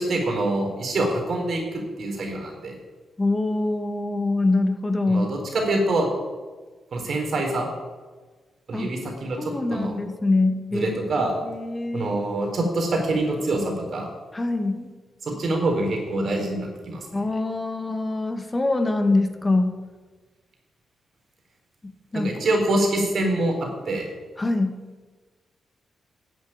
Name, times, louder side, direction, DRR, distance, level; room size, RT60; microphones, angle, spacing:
voice 1, 0.0-1.6 2.0-2.7 5.1-6.1 6.9-7.7 8.7-9.9 10.7-11.3 11.9-14.1 15.2-17.1 22.1-24.1, right 2 dB, 60° right, 1 dB, 4.3 m, -25 dB
voice 2, 3.2-5.3 8.7-8.9 9.4-12.1 14.3-14.9 17.1-19.8 21.8-22.4 24.4-24.8, left 2 dB, 25° left, 6 dB, 1.9 m, -24 dB
11.0 x 7.5 x 8.9 m, 1.3 s
hypercardioid pair, 40°, 0 cm